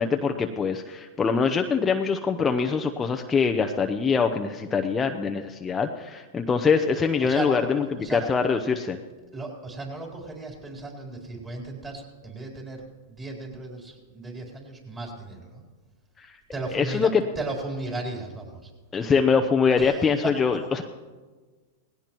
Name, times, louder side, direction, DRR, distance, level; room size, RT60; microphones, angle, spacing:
voice 1, 0.0-9.0 16.2-16.3 16.7-17.2 18.9-20.8, left 5 dB, 20° left, 4 dB, 0.7 m, -24 dB
voice 2, 7.2-7.7 8.0-8.2 9.3-15.6 16.5-18.7 19.8-20.3 20.7-20.8, right 2 dB, 20° right, 0 dB, 3.9 m, -35 dB
19.0 x 16.5 x 3.1 m, 1.3 s
hypercardioid pair, 120°, 0 cm